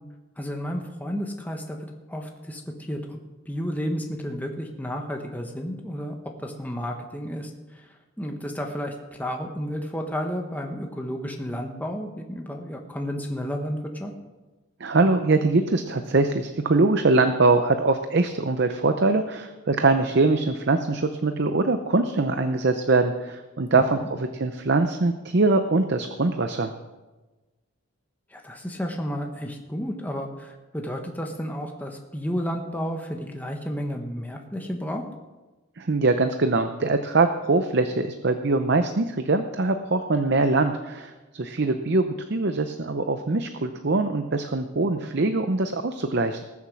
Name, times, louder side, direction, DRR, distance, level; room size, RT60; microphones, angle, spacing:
voice 1, 0.4-3.2 3.5-6.1 6.4-7.5 8.2-14.1 23.7-24.1 28.3-35.0, equal, 10° left, 2 dB, 1.2 m, -32 dB
voice 2, 14.8-26.7 35.8-46.4, right 3 dB, 50° right, 8 dB, 0.6 m, -23 dB
20.0 x 7.3 x 6.2 m, 1.2 s
head